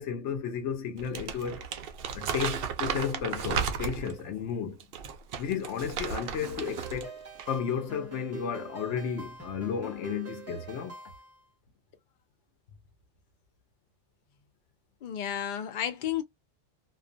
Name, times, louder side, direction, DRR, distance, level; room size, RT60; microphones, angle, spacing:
voice 1, 0.0-1.7 2.1-4.9 5.4-7.2 7.5-11.0, left 7 dB, 85° left, 0.9 m, -33 dB
Crumpling crinkling, 1.0-4.2 4.8-7.1 7.4-7.6, right 7 dB, 65° right, 0.7 m, -34 dB
sound 1, 6.4-11.4, right 2 dB, 20° right, 0.5 m, -44 dB
voice 2, 15.0-16.2, left 10 dB, 55° left, 0.6 m, -32 dB
2.4 x 2.3 x 2.5 m
omnidirectional pair, 1.2 m